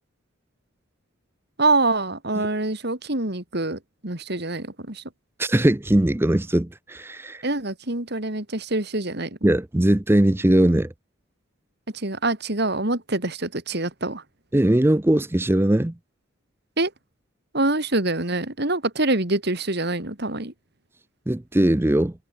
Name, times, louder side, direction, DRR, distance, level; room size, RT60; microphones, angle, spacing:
voice 1, 1.6-5.0 7.4-9.3 11.9-14.2 16.8-16.9 17.5-20.5, right 2 dB, 50° right, 2.9 m, -25 dB
voice 2, 5.4-7.4 9.4-10.9 14.5-15.9 21.3-22.1, right 1 dB, 10° right, 0.5 m, -20 dB
head